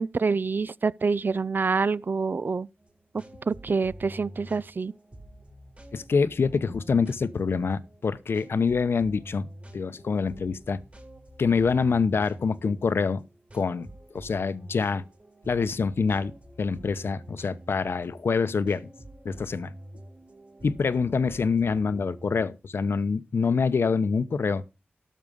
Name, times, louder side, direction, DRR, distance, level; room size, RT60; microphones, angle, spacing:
voice 1, 0.0-2.7 3.5-4.9, right 4 dB, 55° right, 0.5 m, -26 dB
A New Sense Sample, 2.8-22.4, right 1 dB, 35° right, 3.7 m, -47 dB
voice 2, 5.9-10.8 11.4-13.2 13.5-15.0 15.5-18.9 19.2-19.7 20.6-24.6, left 5 dB, 75° left, 0.8 m, -26 dB
13.0 x 6.2 x 5.4 m
cardioid pair, 45°, 4 cm